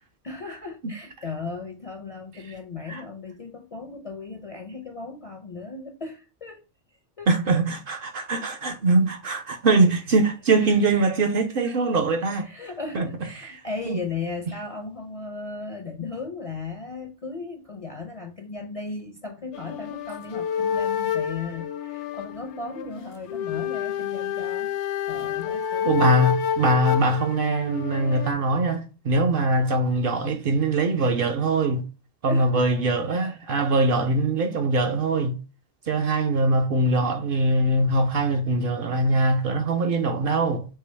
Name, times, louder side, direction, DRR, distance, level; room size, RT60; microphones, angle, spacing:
voice 1, 0.2-6.6 7.2-7.3 10.6-10.8 12.2-24.7 25.1-26.0 32.3-32.7, left 4 dB, 45° left, 0.4 m, -36 dB
voice 2, 7.3-12.5 12.9-13.1 13.9-14.0 25.9-31.9 32.2-35.3 35.9-40.7, right 2 dB, 60° right, 0.6 m, -22 dB
sound 1, 19.5-28.3, left 8 dB, 75° left, 0.9 m, -29 dB
4.6 x 2.9 x 3.2 m
omnidirectional pair, 1.2 m